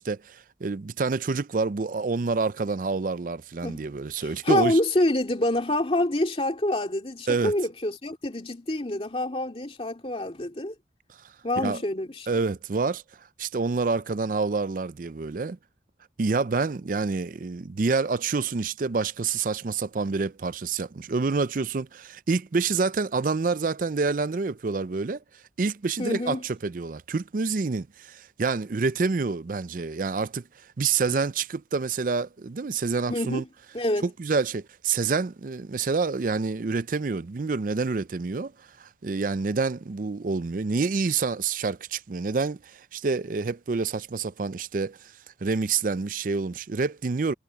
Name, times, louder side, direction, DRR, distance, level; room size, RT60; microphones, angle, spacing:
voice 1, 0.0-4.8 7.3-7.5 11.6-11.8 12.3-13.0 13.4-15.6 16.2-25.2 25.6-30.4 30.8-33.4 34.0-38.5 38.8-45.1 45.4-47.3, right 4 dB, 50° right, 0.5 m, -27 dB
voice 2, 4.2-10.7 11.4-12.3 26.0-26.4 33.1-33.5 33.7-34.1, left 1 dB, 30° left, 2.3 m, -26 dB
head